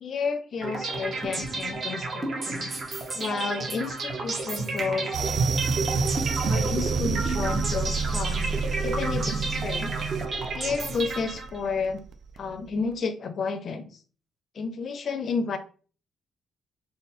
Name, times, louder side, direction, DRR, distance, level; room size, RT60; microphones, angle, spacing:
voice 1, 0.0-2.7 3.2-5.1 6.5-8.5 8.8-9.9 10.5-12.0 12.4-13.9 14.5-15.6, left 5 dB, 55° left, 10 dB, 0.6 m, -31 dB
sound 1, 0.6-11.7, right 3 dB, 45° right, 1.0 m, -30 dB
sound 2, 5.1-12.6, right 5 dB, 65° right, 0.4 m, -30 dB
3.5 x 2.2 x 4.2 m, 0.40 s
cardioid pair, 90°, 0 cm